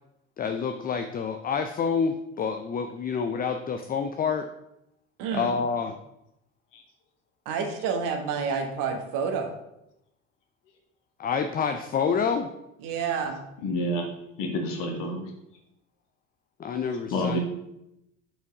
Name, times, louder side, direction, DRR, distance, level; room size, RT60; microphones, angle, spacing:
voice 1, 0.4-4.5 5.3-5.9 11.2-12.5 16.6-17.4, left 6 dB, 25° left, 7 dB, 0.5 m, -28 dB
voice 2, 5.2-5.5 7.4-9.5 12.8-13.4, right 6 dB, 60° right, 4 dB, 1.3 m, -29 dB
voice 3, 13.6-14.0 14.4-15.2 17.1-17.4, left 1 dB, 60° left, 2 dB, 1.6 m, -28 dB
5.7 x 4.5 x 4.7 m, 0.84 s
figure-of-eight pair, 60°, 37 cm